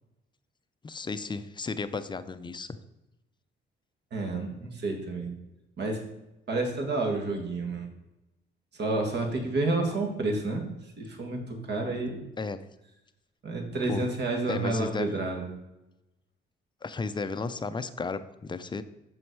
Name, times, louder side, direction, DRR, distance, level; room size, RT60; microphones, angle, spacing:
voice 1, 0.8-2.8 9.4-9.6 12.4-12.6 13.9-14.1 14.5-15.2 16.8-18.8, left 4 dB, 25° left, 11 dB, 0.5 m, -34 dB
voice 2, 4.1-5.3 5.8-6.0 6.5-7.9 8.8-10.6 11.0-12.2 13.4-15.5, right 2 dB, 60° right, 3 dB, 1.8 m, -30 dB
6.3 x 6.0 x 4.6 m, 0.94 s
cardioid pair, 90°, 20 cm